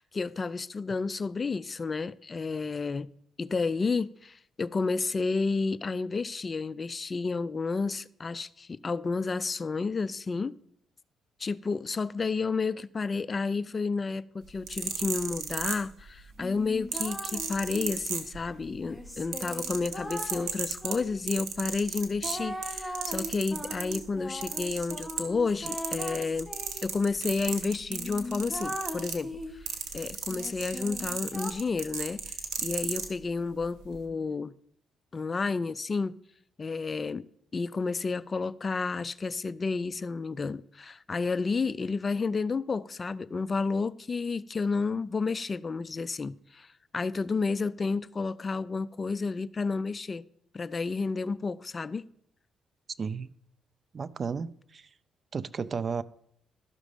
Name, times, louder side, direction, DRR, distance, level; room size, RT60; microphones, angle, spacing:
voice 1, 0.0-3.1 3.4-10.6 11.4-26.5 26.8-32.4 32.6-34.5 35.1-36.2 36.6-37.3 37.5-50.2 50.5-52.1, left 4 dB, 35° left, 0.3 m, -31 dB
sound 1, 14.5-16.2 16.9-18.7 19.0-24.0 24.4-25.4 25.7-33.1 33.8-34.0, right 7 dB, 85° right, 1.4 m, -34 dB
sound 2, 16.4-18.1 18.8-21.4 22.2-26.9 27.5-27.6 27.9-29.7 30.3-31.5, left 1 dB, ahead, 1.1 m, -39 dB
voice 2, 53.0-53.3 53.9-54.8 55.3-56.0, right 5 dB, 45° right, 0.4 m, -33 dB
12.5 x 6.3 x 5.1 m
cardioid pair, 90°, 0 cm